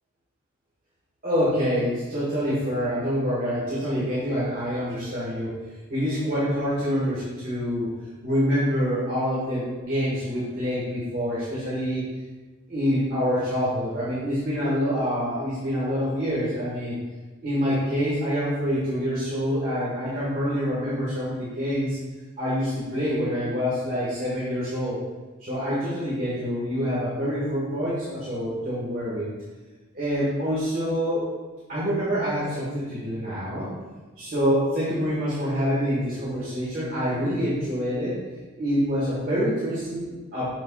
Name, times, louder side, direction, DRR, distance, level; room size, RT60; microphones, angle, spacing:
voice 1, 1.2-5.5 5.9-7.9 8.2-12.0 12.7-16.9 17.4-22.0 22.4-25.0 25.4-29.2 29.9-31.2 31.7-33.7 34.2-38.1 38.6-40.5, equal, 45° right, -9 dB, 1.6 m, -26 dB
6.4 x 6.3 x 2.4 m, 1.3 s
head